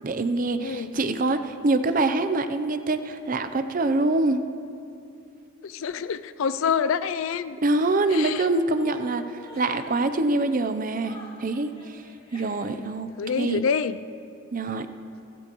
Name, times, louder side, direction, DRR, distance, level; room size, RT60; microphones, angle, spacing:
voice 1, 0.0-4.4 7.6-12.0 12.3-13.1 13.4-13.6 14.5-14.9, right 2 dB, 40° right, 10 dB, 0.6 m, -25 dB
voice 2, 0.6-0.9 5.6-7.6 8.1-8.5 13.2-14.0, left 6 dB, 75° left, 13 dB, 0.4 m, -27 dB
Chuckle chortle, 7.7-12.9, left 2 dB, 30° left, 3.5 m, -49 dB
28.0 x 13.5 x 3.1 m, 2.6 s
head